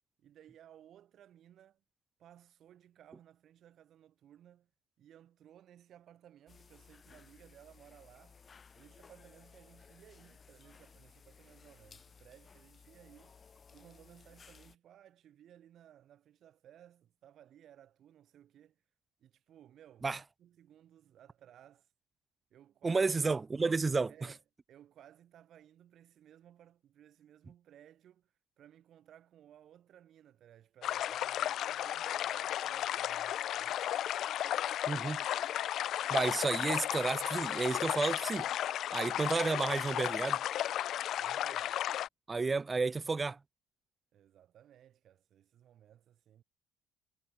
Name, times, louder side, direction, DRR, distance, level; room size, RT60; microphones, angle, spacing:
voice 1, 0.2-1.8 2.2-4.7 5.0-8.4 8.7-13.4 13.7-18.8 19.2-20.1 20.4-21.9 22.5-23.1 24.1-24.4 24.7-33.8 41.2-41.7 44.1-46.4, right 11 dB, 45° right, 2.5 m, -59 dB
sound 1, 6.5-14.8, left 5 dB, 25° left, 1.5 m, -59 dB
voice 2, 22.8-24.1 34.9-35.2 36.1-38.5 38.9-40.4 42.3-43.4, right 4 dB, 15° right, 0.3 m, -31 dB
sound 2, 30.8-42.1, left 11 dB, 45° left, 0.8 m, -34 dB
cardioid pair, 160°, 0 cm